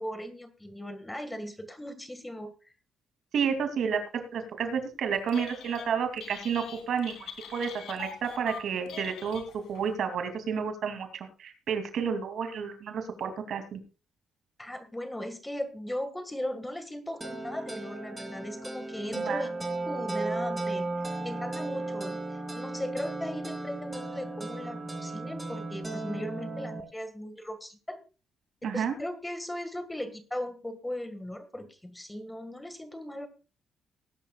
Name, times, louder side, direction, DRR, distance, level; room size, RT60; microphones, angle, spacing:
voice 1, 0.0-2.5 14.6-19.5 19.9-28.0 28.6-33.3, left 1 dB, 10° left, 10 dB, 1.9 m, -38 dB
voice 2, 3.3-9.4 9.7-13.8 19.1-19.4 28.6-28.9, right 6 dB, 65° right, 7 dB, 2.8 m, -31 dB
Telephone, 5.1-5.9 6.2-9.9, left 7 dB, 80° left, 3.0 m, -43 dB
sound 1, 17.2-26.8, right 2 dB, 10° right, 2.8 m, -35 dB
19.5 x 10.5 x 2.4 m, 0.34 s
cardioid pair, 90°, 0 cm